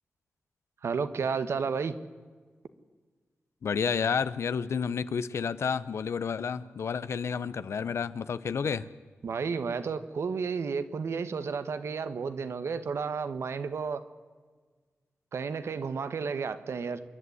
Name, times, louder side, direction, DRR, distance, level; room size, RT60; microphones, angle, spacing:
voice 1, 0.8-2.0 9.2-14.0 15.3-17.0, right 5 dB, 85° right, 11 dB, 1.3 m, -32 dB
voice 2, 3.6-8.9, left 6 dB, 85° left, 15 dB, 0.8 m, -30 dB
27.0 x 11.5 x 9.5 m, 1.5 s
wide cardioid pair, 75°, 4 cm